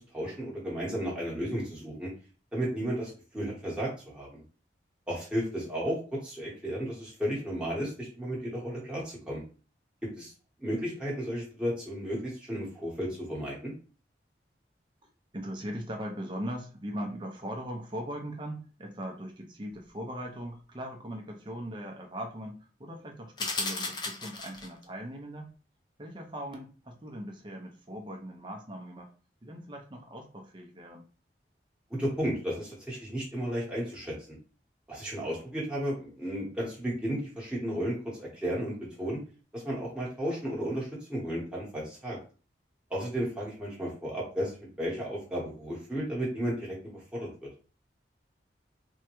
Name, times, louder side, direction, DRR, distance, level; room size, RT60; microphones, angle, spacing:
voice 1, 0.1-2.1 2.5-4.4 5.1-9.4 10.2-10.3 10.6-13.7 31.9-34.3 34.9-39.2 39.5-42.2 42.9-47.5, equal, 5° right, -6 dB, 1.1 m, -33 dB
voice 2, 15.0-25.5 26.0-29.1 29.4-31.1, equal, 25° right, 1 dB, 0.6 m, -40 dB
sound 1, 23.4-24.8, left 3 dB, 25° left, 0.4 m, -34 dB
3.5 x 2.2 x 3.0 m, 0.37 s
head